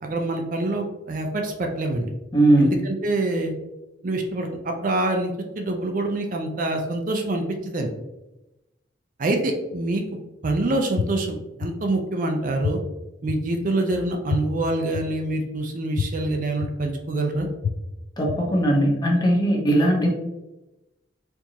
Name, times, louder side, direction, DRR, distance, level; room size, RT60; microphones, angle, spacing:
voice 1, 0.0-2.1 2.6-3.5 4.0-7.9 9.2-10.0 10.4-12.8 13.2-17.5, right 2 dB, 45° right, 3 dB, 0.4 m, -26 dB
voice 2, 2.3-2.8 18.2-20.1, right 1 dB, 20° left, -1 dB, 0.7 m, -19 dB
sound 1, 11.0-11.1 11.6-11.7 12.6-12.7 13.3-13.4 14.3-14.4 14.9-15.0 16.0-16.1 16.6-16.7 17.6-17.7 18.3-18.4, left 7 dB, 80° left, 0.3 m, -24 dB
4.4 x 2.6 x 2.8 m, 0.98 s
head